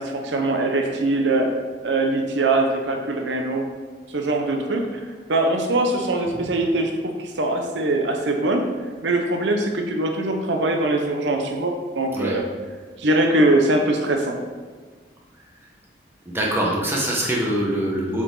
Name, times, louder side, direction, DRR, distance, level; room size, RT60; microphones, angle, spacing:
voice 1, 0.0-1.6 1.8-3.7 4.1-8.6 9.0-12.4 13.0-14.4, right 2 dB, 75° right, 3 dB, 0.8 m, -22 dB
voice 2, 16.3-18.2, right 1 dB, 10° right, -3 dB, 1.2 m, -23 dB
8.0 x 5.0 x 3.9 m, 1.5 s
head